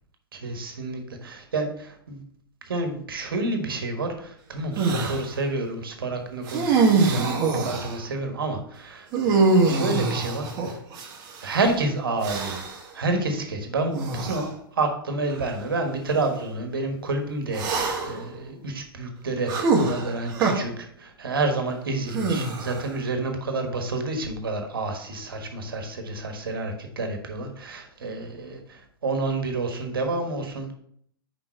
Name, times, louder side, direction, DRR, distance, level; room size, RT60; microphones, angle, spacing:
voice 1, 0.3-2.2 2.6-10.8 11.4-12.6 12.9-30.7, right 2 dB, 65° right, 5 dB, 1.4 m, -29 dB
sound 1, 4.8-5.2 6.5-8.0 9.1-11.5 12.2-12.8 13.9-14.5 15.3-15.4 17.5-18.2 19.5-20.5 22.1-22.9, right 3 dB, 30° right, 1.3 m, -24 dB
6.0 x 5.1 x 4.4 m, 0.66 s
figure-of-eight pair, 110°, 12 cm